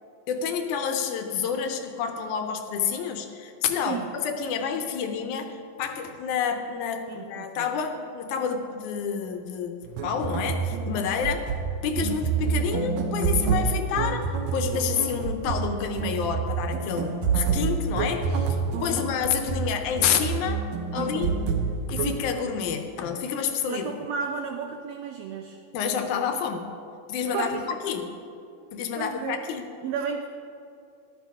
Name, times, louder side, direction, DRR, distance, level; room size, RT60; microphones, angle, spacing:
voice 1, 0.3-9.8 10.0-11.4 11.8-20.6 20.9-21.3 21.9-23.9 25.7-26.7 27.1-28.1 28.7-29.7, left 7 dB, 75° left, 6 dB, 2.2 m, -29 dB
voice 2, 7.1-7.7 11.2-11.3 18.9-19.1 21.0-21.5 23.7-25.6 27.3-27.7 28.9-29.4 29.8-30.3, right 6 dB, 85° right, 5 dB, 1.4 m, -33 dB
sound 1, 9.8-22.2, right 5 dB, 70° right, 2.0 m, -28 dB
13.5 x 11.5 x 3.6 m, 2.5 s
omnidirectional pair, 3.7 m